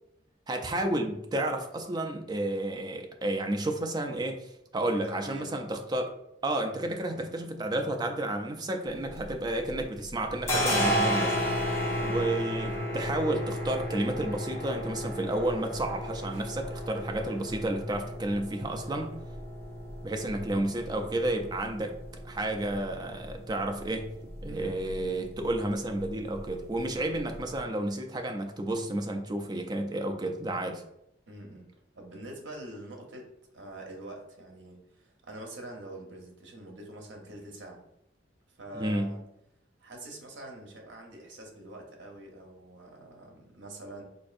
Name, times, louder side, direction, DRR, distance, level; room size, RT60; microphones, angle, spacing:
voice 1, 0.5-6.1 6.4-11.5 11.7-19.1 20.0-22.0 22.2-24.1 24.4-30.8 38.7-39.2, right 1 dB, 20° right, 3 dB, 0.4 m, -31 dB
voice 2, 4.7-5.5 7.1-7.3 11.9-12.3 24.5-25.0 31.3-37.8 38.6-39.2 39.8-44.0, right 1 dB, 75° right, 1 dB, 0.7 m, -45 dB
sound 1, 8.9-9.8 10.1-27.6, equal, 15° left, 0.7 m, -34 dB
sound 2, 12.6-17.8, equal, 85° left, 1.0 m, -52 dB
4.1 x 2.6 x 2.4 m, 0.80 s
head